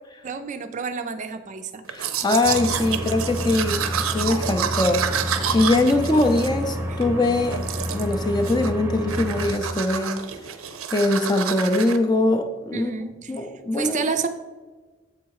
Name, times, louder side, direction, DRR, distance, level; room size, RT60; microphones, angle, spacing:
voice 1, 0.2-1.8 12.7-13.3 13.7-14.3, right 5 dB, 35° right, 8 dB, 0.4 m, -29 dB
voice 2, 1.9-7.6 7.9-10.2 10.9-12.9 13.3-14.0, left 2 dB, 20° left, 6 dB, 0.5 m, -22 dB
Domestic sounds home sounds, 1.9-7.1 7.5-8.2 8.4-8.8 9.1-12.0, right 8 dB, 85° right, 0.6 m, -29 dB
sound 1, 2.4-9.5, equal, 10° right, 0.8 m, -30 dB
7.7 x 4.2 x 4.7 m, 1.3 s
head